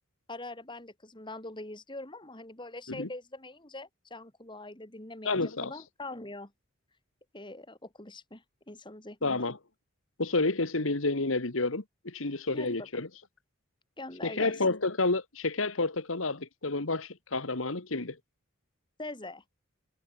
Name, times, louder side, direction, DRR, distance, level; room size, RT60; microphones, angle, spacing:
voice 1, 0.3-6.5 7.3-9.5 12.5-13.0 14.0-14.5 19.0-19.4, left 2 dB, 25° left, 3.6 m, -43 dB
voice 2, 5.2-5.7 9.2-9.6 10.2-13.1 14.2-18.2, left 3 dB, 80° left, 2.0 m, -30 dB
head